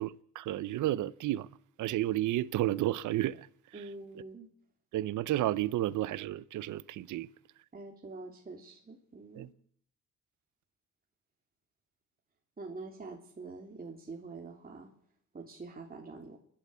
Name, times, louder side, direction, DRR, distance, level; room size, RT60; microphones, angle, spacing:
voice 1, 0.0-1.5 1.8-3.5 3.7-3.8 4.9-7.3 9.3-9.5, right 14 dB, 80° right, 0.8 m, -32 dB
voice 2, 3.7-4.5 7.7-9.5 12.6-14.9 15.3-16.4, right 3 dB, 30° right, 3.5 m, -45 dB
29.5 x 12.0 x 8.5 m
cardioid pair, 90°, 30 cm